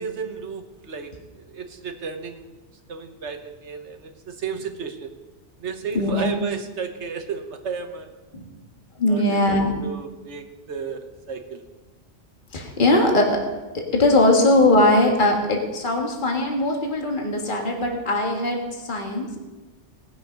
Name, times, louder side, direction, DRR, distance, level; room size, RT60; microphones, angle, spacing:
voice 1, 0.0-2.5 2.9-5.1 5.6-8.1 9.1-11.6, right 5 dB, 70° right, 6 dB, 1.4 m, -33 dB
voice 2, 5.9-6.3 8.3-8.5 9.0-9.8 12.5-13.4 13.7-19.4, left 2 dB, 45° left, 1 dB, 1.8 m, -20 dB
19.0 x 7.1 x 5.2 m, 1.2 s
omnidirectional pair, 1.2 m